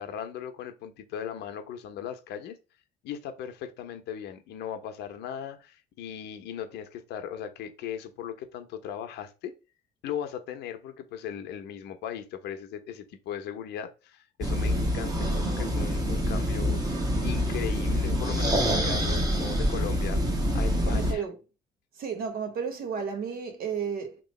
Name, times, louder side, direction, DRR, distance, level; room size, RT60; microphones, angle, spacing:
voice 1, 0.0-2.6 3.0-9.5 10.0-20.2 20.5-21.2, left 9 dB, 80° left, 0.9 m, -38 dB
sound 1, 14.4-21.1, equal, 25° right, 1.1 m, -26 dB
voice 2, 20.9-21.3 22.0-24.2, right 6 dB, 60° right, 1.2 m, -32 dB
3.1 x 3.0 x 4.2 m
cardioid pair, 110°, 17 cm